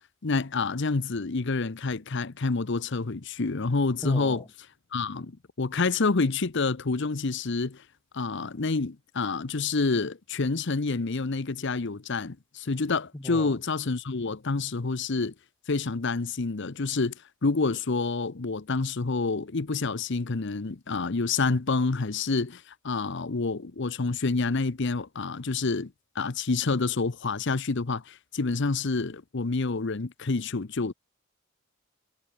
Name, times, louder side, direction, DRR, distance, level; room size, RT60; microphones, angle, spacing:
voice 1, 0.2-4.4 4.9-7.8 8.1-15.3 15.7-17.1 17.4-30.9, left 3 dB, 60° left, 0.8 m, -28 dB
voice 2, 4.0-4.5 13.1-13.6, left 1 dB, 15° left, 1.0 m, -37 dB
head